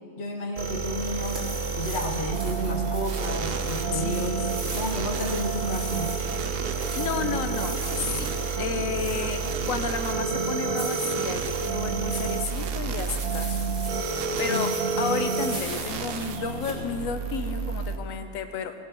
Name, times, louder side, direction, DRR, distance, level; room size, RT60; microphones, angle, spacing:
voice 1, 0.2-1.4 1.8-6.1 14.5-14.7, left 1 dB, 55° left, 3 dB, 1.3 m, -32 dB
sound 1, 0.6-18.0, right 4 dB, 90° right, 1.3 m, -31 dB
sound 2, 0.8-16.7, right 1 dB, 40° right, 2.7 m, -40 dB
sound 3, 2.3-16.9, right 7 dB, 65° right, 0.6 m, -34 dB
voice 2, 3.9-5.1 6.6-8.3 8.6-14.0 14.4-18.7, left 6 dB, 90° left, 8 dB, 1.1 m, -32 dB
16.0 x 6.8 x 6.1 m, 2.5 s
omnidirectional pair, 1.4 m